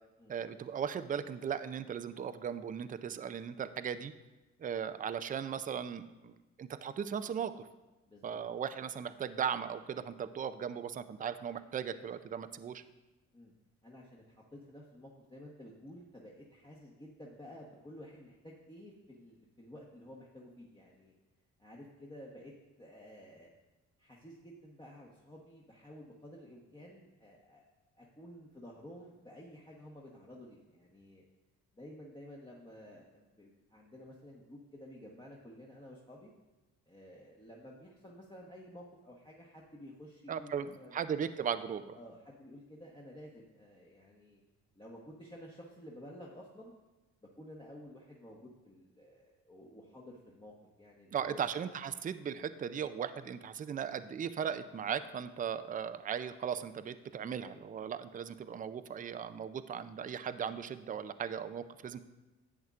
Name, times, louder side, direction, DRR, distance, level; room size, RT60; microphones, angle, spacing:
voice 1, 0.3-4.1 4.6-7.6 8.2-12.8 40.3-42.0 51.1-62.0, right 8 dB, 30° right, 12 dB, 0.4 m, -37 dB
voice 2, 8.1-8.4 13.3-13.5 13.8-21.1 21.6-22.5 22.8-23.5 24.0-27.6 27.9-31.2 31.7-36.3 36.9-40.9 41.9-44.4 44.7-46.7 47.4-50.5 50.8-51.6, equal, 15° left, -4 dB, 1.1 m, -52 dB
11.0 x 8.0 x 2.4 m, 1.1 s
cardioid pair, 90°, 30 cm